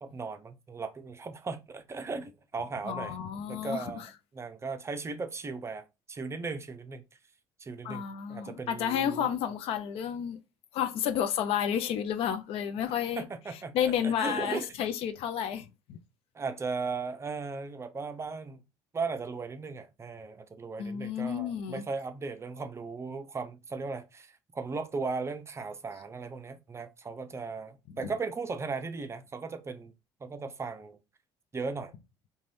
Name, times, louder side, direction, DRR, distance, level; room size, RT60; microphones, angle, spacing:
voice 1, 0.0-3.2 3.5-4.0 4.3-7.0 7.6-9.3 12.9-13.7 14.0-14.7 16.3-18.6 18.9-29.9 30.2-31.0 31.5-31.9, right 4 dB, 25° right, 0.5 m, -37 dB
voice 2, 2.8-4.1 7.8-10.4 10.7-13.3 13.7-16.0 20.8-21.8 28.0-28.1, left 9 dB, 70° left, 0.4 m, -31 dB
2.5 x 2.2 x 3.2 m
supercardioid pair, 85°, 11 cm